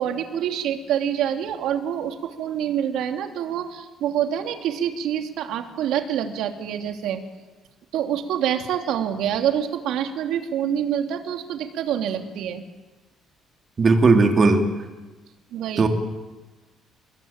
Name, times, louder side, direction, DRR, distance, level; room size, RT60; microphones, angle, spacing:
voice 1, 0.0-7.2 7.9-12.6 15.5-15.9, right 9 dB, 75° right, 5 dB, 3.1 m, -26 dB
voice 2, 13.8-14.6 15.8-15.9, right 3 dB, 30° right, 4 dB, 3.4 m, -16 dB
30.0 x 21.5 x 9.0 m, 1.2 s
cardioid pair, 145°, 0 cm